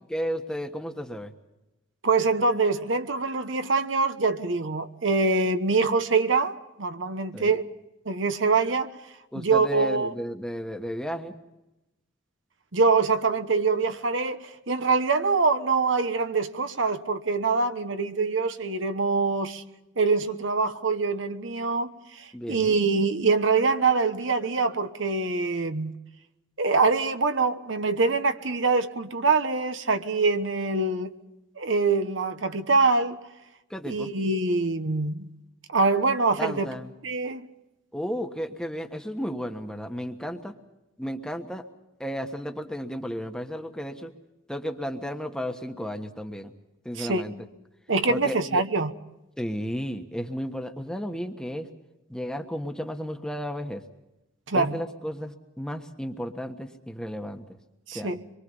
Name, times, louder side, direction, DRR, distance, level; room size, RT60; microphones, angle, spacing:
voice 1, 0.1-1.3 7.3-7.5 9.3-11.3 22.3-22.8 33.7-34.1 36.4-36.9 37.9-40.5 41.0-41.6 42.0-44.1 44.5-46.5 46.8-47.3 48.1-48.6 49.4-51.7 52.1-53.8 54.5-57.4 57.9-58.2, equal, 5° left, 1.3 m, -33 dB
voice 2, 2.0-7.6 8.0-8.9 9.3-10.1 12.7-19.6 20.0-25.9 26.6-31.1 31.6-33.2 33.8-35.3 35.7-36.7 37.0-37.4 47.0-47.2 47.9-48.9 54.5-54.8 57.9-58.2, right 4 dB, 75° right, 1.2 m, -24 dB
25.5 x 23.0 x 5.5 m
head